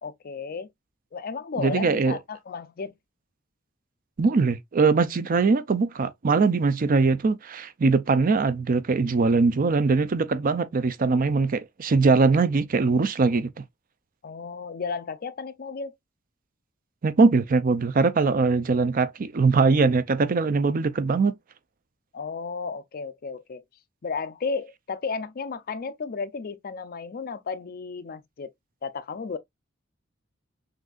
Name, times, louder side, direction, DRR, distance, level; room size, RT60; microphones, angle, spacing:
voice 1, 0.0-0.7 1.1-2.9 14.2-16.0 22.1-23.6 24.0-28.5 28.8-29.4, left 5 dB, 45° left, 0.5 m, -33 dB
voice 2, 1.6-2.2 4.2-13.6 17.0-21.3, right 4 dB, 45° right, 0.5 m, -21 dB
6.2 x 2.6 x 2.4 m
head